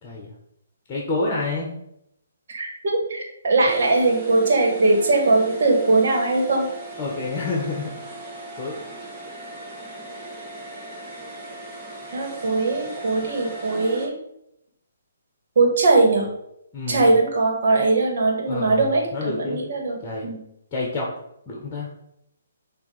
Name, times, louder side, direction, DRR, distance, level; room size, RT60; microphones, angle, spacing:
voice 1, 0.9-1.7 7.0-7.9 8.6-8.8 16.7-17.1 18.5-18.8 19.1-19.6 20.0-20.3 20.7-21.2 21.5-21.9, left 3 dB, 25° left, -1 dB, 1.3 m, -28 dB
voice 2, 2.5-6.7 12.1-14.1 15.6-16.3 16.9-20.4, right 3 dB, 60° right, 1 dB, 1.7 m, -20 dB
sound 1, 3.7-14.1, right 2 dB, 25° right, 1.6 m, -37 dB
6.7 x 2.9 x 4.9 m, 0.78 s
figure-of-eight pair, 135°, 0 cm